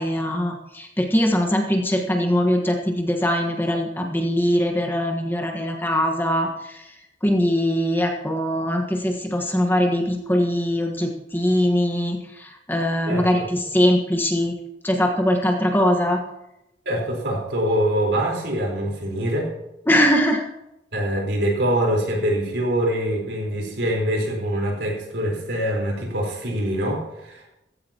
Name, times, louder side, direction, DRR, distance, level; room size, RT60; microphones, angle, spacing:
voice 1, 0.0-6.9 7.2-14.5 14.8-16.2 19.9-20.4, equal, 10° left, 2 dB, 1.4 m, -22 dB
voice 2, 13.1-13.5 16.9-19.5 20.9-27.5, right 1 dB, 70° right, -1 dB, 4.3 m, -24 dB
15.5 x 15.5 x 3.0 m, 0.90 s
head